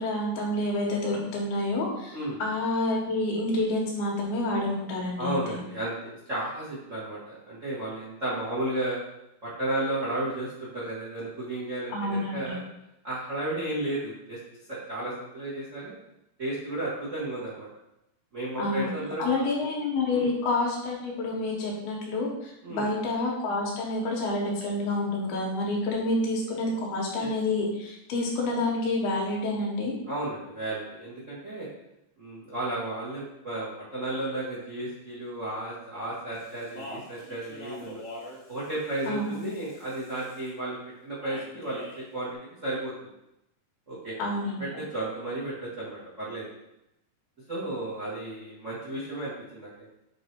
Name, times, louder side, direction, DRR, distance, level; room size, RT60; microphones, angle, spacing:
voice 1, 0.0-5.6 11.9-12.5 18.6-18.9 19.2-29.9 39.1-39.4 44.2-44.6, left 2 dB, 80° left, -2 dB, 3.2 m, -28 dB
voice 2, 5.2-9.0 9.4-12.6 13.0-14.4 14.7-15.9 16.4-17.7 18.3-19.3 20.1-20.3 22.6-22.9 27.1-27.3 30.1-31.7 32.2-38.0 38.5-40.8 41.0-43.1 43.9-44.2 44.4-46.5 47.5-49.9, right 1 dB, 70° right, -7 dB, 0.7 m, -33 dB
Speech, 36.3-40.5 41.2-42.1, left 1 dB, 35° left, 1.4 m, -44 dB
7.9 x 3.4 x 4.6 m, 0.86 s
omnidirectional pair, 4.5 m